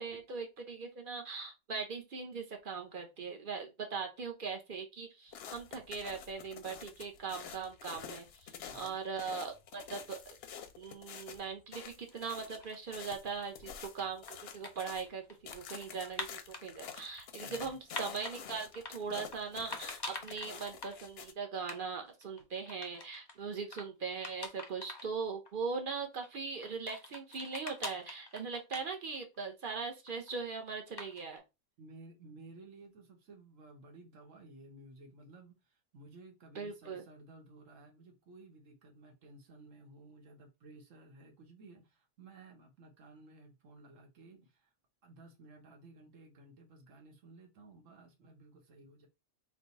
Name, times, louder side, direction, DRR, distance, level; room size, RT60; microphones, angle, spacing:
voice 1, 0.0-10.2 10.8-14.2 14.5-31.4 36.5-37.0, right 5 dB, 50° right, 0.8 m, -40 dB
sound 1, 5.3-15.1 15.5-21.3, left 7 dB, 65° left, 0.7 m, -48 dB
voice 2, 8.6-9.0 17.4-17.8 31.8-44.7 45.0-49.1, right 2 dB, 85° right, 1.3 m, -56 dB
sound 2, 12.1-13.0 13.6-16.6 17.2-18.4 18.7-19.4 19.7-21.0 21.3-21.4 21.6-21.8 22.1-23.4 23.7-23.9 24.2-25.1 25.4-25.5 26.2-29.4 29.6-30.3 31.0-31.4, left 3 dB, 35° left, 0.4 m, -45 dB
3.2 x 2.3 x 3.9 m
omnidirectional pair, 1.3 m